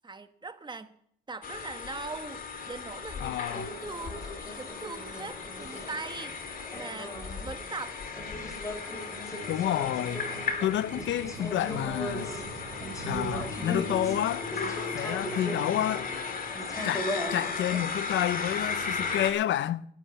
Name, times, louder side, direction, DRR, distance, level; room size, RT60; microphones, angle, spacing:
voice 1, 0.0-0.9 1.3-6.4 6.7-8.0, right 3 dB, 20° right, 1.2 m, -41 dB
sound 1, 1.4-19.3, left 5 dB, 45° left, 2.3 m, -36 dB
voice 2, 3.2-3.7 9.5-10.2 10.6-12.3 13.0-14.5 14.9-16.1 16.8-19.8, left 12 dB, 70° left, 0.6 m, -29 dB
sound 2, 3.4-17.8, equal, 15° left, 3.2 m, -39 dB
sound 3, 7.2-14.5, right 6 dB, 85° right, 1.1 m, -47 dB
11.5 x 10.0 x 8.2 m
cardioid pair, 90°, 20 cm